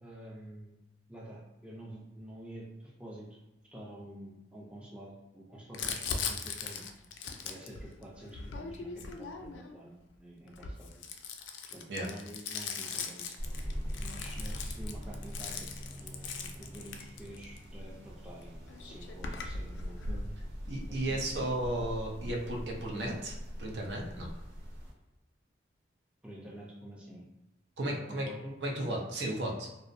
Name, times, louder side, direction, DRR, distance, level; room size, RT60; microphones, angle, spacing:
voice 1, 0.0-0.8 1.1-3.4 3.7-6.8 7.4-11.0 11.7-13.3 13.6-13.7 14.0-20.0 20.8-21.5 26.2-27.2 27.9-28.5, right 1 dB, 5° right, -5 dB, 0.4 m, -48 dB
Crumpling crinkling, 5.7-9.8 10.5-17.6 18.4-18.5 18.7-20.3, left 5 dB, 75° left, 0.3 m, -39 dB
sound 1, 13.4-24.9, equal, 90° right, 1.2 m, -42 dB
voice 2, 20.7-24.3 27.8-28.3 28.6-29.7, right 1 dB, 65° right, 0 dB, 0.5 m, -34 dB
2.5 x 2.0 x 2.5 m, 0.97 s
head